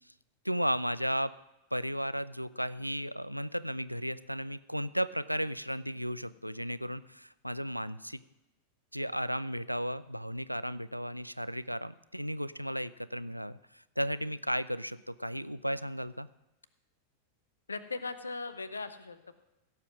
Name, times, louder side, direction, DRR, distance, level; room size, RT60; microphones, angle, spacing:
voice 1, 0.4-1.3 1.7-8.2 8.9-16.3, equal, 90° right, 17 dB, 0.4 m, -34 dB
voice 2, 17.7-19.3, left 3 dB, 75° left, 13 dB, 0.7 m, -39 dB
16.0 x 7.4 x 6.2 m, 0.96 s
figure-of-eight pair, 90°, 0 cm